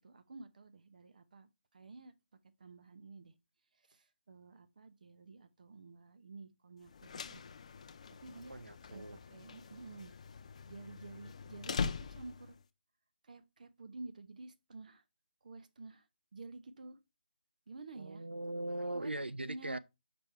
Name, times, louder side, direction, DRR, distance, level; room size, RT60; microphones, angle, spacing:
voice 1, 0.0-2.1 2.6-3.3 3.7-7.5 8.2-8.6 8.9-9.0 9.3-10.1 10.7-12.6 13.2-15.0 15.4-16.1 16.3-17.0 17.7-18.2 18.9-19.1 19.4-19.8, right 3 dB, 50° right, 0.8 m, -51 dB
sound 1, 6.9-12.6, left 5 dB, 40° left, 0.4 m, -43 dB
voice 2, 8.5-9.2 18.0-19.8, right 1 dB, 90° right, 0.5 m, -40 dB
5.3 x 4.6 x 4.3 m
figure-of-eight pair, 155°, 6 cm